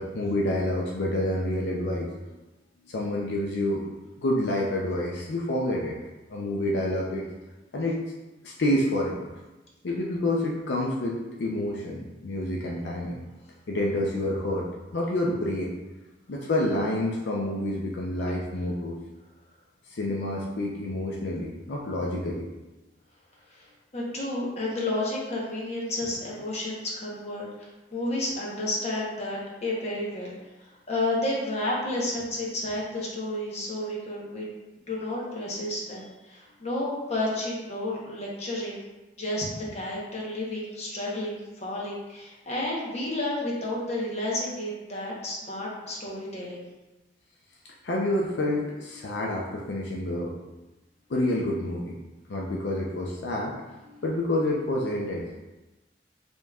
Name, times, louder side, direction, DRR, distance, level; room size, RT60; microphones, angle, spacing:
voice 1, 0.0-2.1 2.9-3.9 4.2-6.0 6.3-7.3 7.7-8.0 8.4-9.3 9.8-13.1 13.7-14.7 14.9-15.7 16.3-19.0 19.9-22.5 47.8-50.3 51.1-52.0 52.3-53.5 53.9-55.2, left 1 dB, 75° left, -2 dB, 0.5 m, -28 dB
voice 2, 23.9-30.3 30.6-34.5 34.9-38.8 39.2-39.5 39.7-46.6, left 1 dB, 40° left, -4 dB, 0.9 m, -31 dB
5.1 x 3.0 x 2.3 m, 1.1 s
head